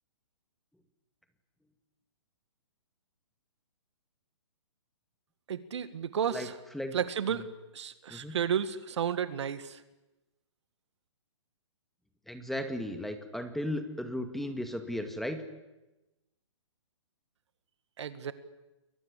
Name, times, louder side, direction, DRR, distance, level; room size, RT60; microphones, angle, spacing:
voice 1, 5.5-6.6 6.9-7.5 7.7-9.8 18.0-18.3, right 8 dB, 65° right, 13 dB, 2.0 m, -32 dB
voice 2, 12.3-15.4, left 1 dB, ahead, 7 dB, 2.1 m, -35 dB
30.0 x 22.0 x 8.5 m, 1.0 s
hypercardioid pair, 135°, 16 cm